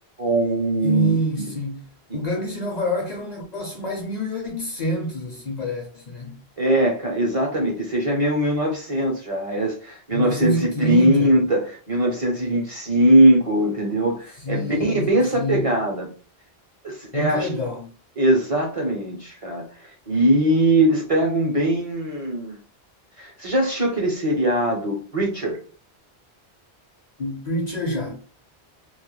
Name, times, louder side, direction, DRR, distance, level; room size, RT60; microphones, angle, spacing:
voice 1, 0.2-1.5 6.6-16.1 16.8-17.5 18.2-22.6 23.2-25.6, right 1 dB, 40° right, 0.5 m, -21 dB
voice 2, 0.8-1.9 2.1-6.4 10.1-11.3 14.4-15.7 17.1-17.9 27.2-28.2, equal, 50° left, 0.6 m, -27 dB
2.2 x 2.1 x 3.0 m
omnidirectional pair, 1.1 m